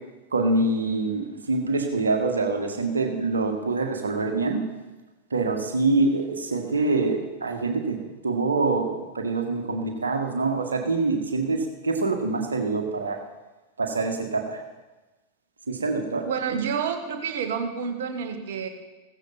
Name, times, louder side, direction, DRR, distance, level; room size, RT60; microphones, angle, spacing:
voice 1, 0.3-4.6 5.3-8.0 8.2-13.2 13.8-14.6 15.7-16.3, right 3 dB, 70° right, 3 dB, 1.9 m, -25 dB
voice 2, 16.2-18.7, right 6 dB, 55° right, 6 dB, 1.6 m, -29 dB
15.5 x 15.0 x 4.3 m, 1.2 s
figure-of-eight pair, 90°, 0 cm